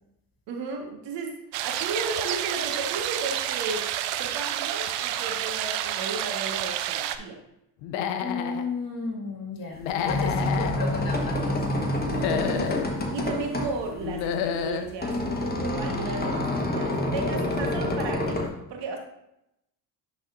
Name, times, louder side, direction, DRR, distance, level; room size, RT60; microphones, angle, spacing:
voice 1, 0.5-1.3 1.6-3.9 4.2-7.4 12.3-12.8 13.1-18.4 18.7-19.0, right 3 dB, 70° right, 2 dB, 1.4 m, -34 dB
sound 1, 1.5-7.2, right 12 dB, 85° right, 0.6 m, -29 dB
Human voice / Animal, 7.8-8.6 9.8-10.8 12.0-12.9 14.0-14.9, left 8 dB, 80° left, 0.7 m, -29 dB
voice 2, 8.2-11.6, left 4 dB, 50° left, 0 dB, 2.0 m, -33 dB
sound 2, 9.8-18.5, left 1 dB, 20° left, 1.3 m, -28 dB
10.5 x 4.1 x 2.5 m, 0.83 s
supercardioid pair, 70°, 45 cm